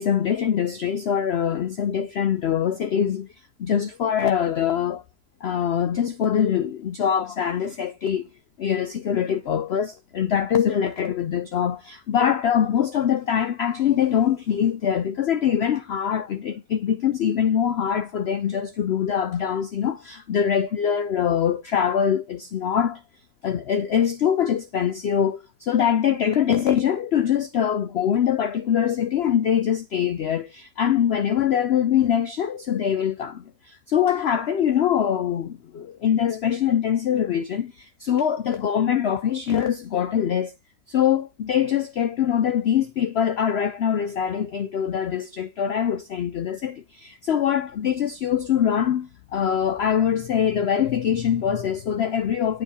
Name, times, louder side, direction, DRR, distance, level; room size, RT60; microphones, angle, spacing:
voice 1, 0.0-3.3 3.6-5.0 5.4-8.3 8.6-23.0 23.4-40.5 40.9-52.6, left 9 dB, 85° left, 0.5 m, -23 dB
9.0 x 3.8 x 4.1 m
omnidirectional pair, 1.8 m